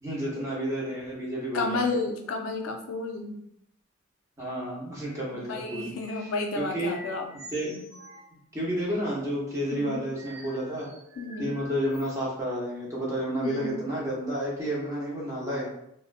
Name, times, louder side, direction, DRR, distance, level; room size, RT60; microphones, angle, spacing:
voice 1, 0.0-1.9 4.4-5.9 6.6-6.9 7.3-7.7 8.5-10.9 11.4-15.7, equal, 15° right, -5 dB, 0.7 m, -31 dB
voice 2, 1.5-3.4 5.3-7.3 7.7-7.9 9.7-10.1 11.2-11.6 13.4-13.8, left 3 dB, 80° left, 3 dB, 0.4 m, -31 dB
sound 1, 5.5-6.5 6.9-8.3 10.1-12.2, right 1 dB, 80° right, 0.7 m, -47 dB
2.4 x 2.1 x 2.4 m, 0.74 s
head